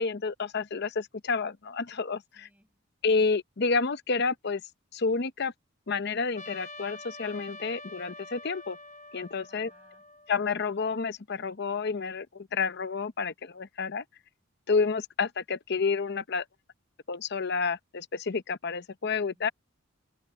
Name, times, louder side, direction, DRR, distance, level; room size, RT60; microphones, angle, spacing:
voice 1, 0.0-2.2 3.0-4.6 4.9-5.5 5.9-8.8 9.1-9.7 10.3-14.0 14.7-16.4 17.1-19.5, left 4 dB, 55° left, 0.8 m, -29 dB
voice 2, 2.3-2.8 9.5-10.1 19.3-19.5, equal, 10° right, 7.2 m, -65 dB
Trumpet, 6.4-10.8, left 2 dB, 35° left, 1.1 m, -46 dB
head